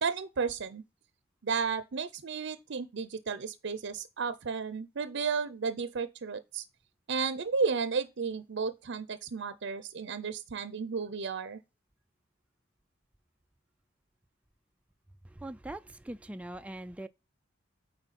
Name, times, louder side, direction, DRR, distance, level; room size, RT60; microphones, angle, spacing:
voice 1, 0.0-0.8 1.4-6.6 7.1-11.6, right 5 dB, 60° right, 0.6 m, -33 dB
voice 2, 15.4-17.1, right 1 dB, 5° right, 0.3 m, -41 dB
8.9 x 4.4 x 4.1 m
head